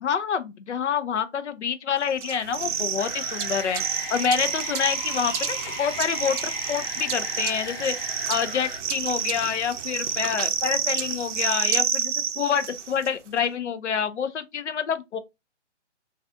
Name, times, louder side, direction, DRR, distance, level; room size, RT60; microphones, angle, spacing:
voice 1, 0.0-3.8 4.1-7.9 8.3-15.2, left 7 dB, 70° left, 0.5 m, -27 dB
sound 1, 2.2-13.1, right 8 dB, 80° right, 0.5 m, -29 dB
sound 2, 3.0-8.8, left 1 dB, 50° left, 0.8 m, -37 dB
2.6 x 2.3 x 2.2 m
hypercardioid pair, 175°, 36 cm